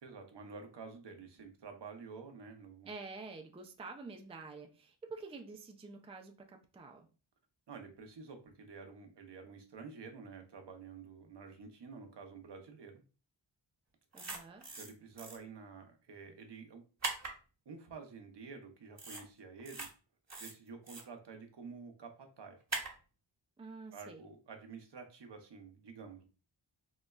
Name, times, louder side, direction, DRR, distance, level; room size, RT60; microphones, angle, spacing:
voice 1, 0.0-2.9 7.7-13.0 14.7-16.8 17.7-19.9 20.4-22.6 23.9-26.2, right 5 dB, 60° right, 5 dB, 0.7 m, -50 dB
voice 2, 2.8-7.1 14.1-14.7 23.6-24.2, right 4 dB, 15° right, 4 dB, 0.4 m, -48 dB
sound 1, 14.1-14.9 15.2-15.4 17.0-17.3 19.0-19.2 19.6-19.9 20.3-21.0 22.7-22.9, right 3 dB, 35° right, 1.0 m, -40 dB
3.8 x 2.1 x 2.3 m, 0.35 s
cardioid pair, 55°, 47 cm